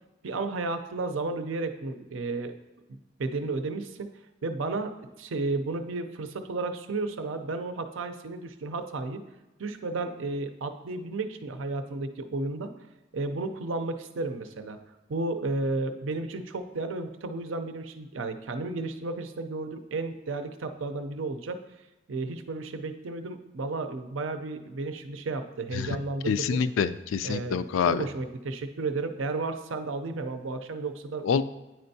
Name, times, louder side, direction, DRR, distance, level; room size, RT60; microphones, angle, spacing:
voice 1, 0.2-2.5 2.9-4.1 4.4-4.9 5.2-9.2 9.6-12.7 13.1-14.8 15.1-21.6 22.1-26.6 27.2-31.4, right 3 dB, 85° right, 8 dB, 0.5 m, -33 dB
voice 2, 26.3-28.0 31.2-31.4, left 6 dB, 90° left, 13 dB, 0.3 m, -26 dB
9.3 x 4.3 x 2.7 m, 1.0 s
head